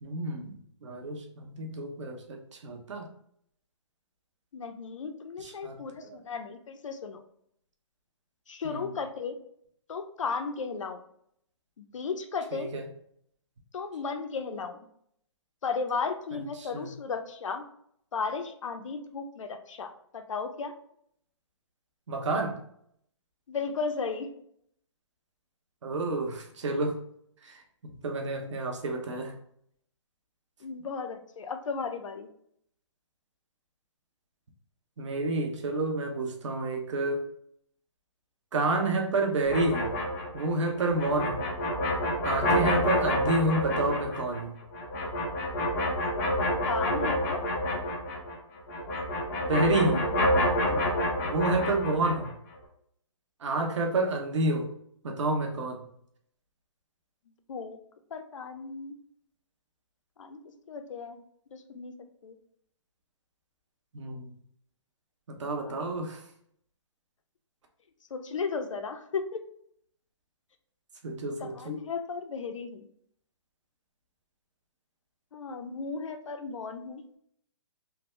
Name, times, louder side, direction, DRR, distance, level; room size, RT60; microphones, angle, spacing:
voice 1, 0.0-3.1 5.4-6.2 8.6-8.8 12.5-12.9 16.3-16.9 22.1-22.6 25.8-27.0 27.4-27.6 28.0-29.3 35.0-37.2 38.5-39.9 40.3-41.5 42.2-44.6 49.5-50.1 50.7-50.9 51.2-52.3 53.4-54.7 55.0-55.9 63.9-64.3 65.3-66.2 71.0-71.7, right 2 dB, 70° right, 2 dB, 0.8 m, -29 dB
voice 2, 4.5-7.2 8.5-9.4 9.9-11.0 11.8-12.7 13.7-14.8 15.6-17.6 18.1-20.7 23.5-24.3 30.6-32.3 46.6-47.4 49.5-50.1 57.5-57.8 58.1-59.0 60.2-60.4 60.7-61.2 61.5-61.9 62.2-62.4 65.6-65.8 68.1-69.4 71.4-72.9 75.3-77.0, left 5 dB, 80° left, 8 dB, 0.5 m, -35 dB
sound 1, 39.4-48.4 48.7-52.3, left 1 dB, 30° left, 0.7 m, -28 dB
3.4 x 2.0 x 3.0 m, 0.69 s
hypercardioid pair, 150°, 16 cm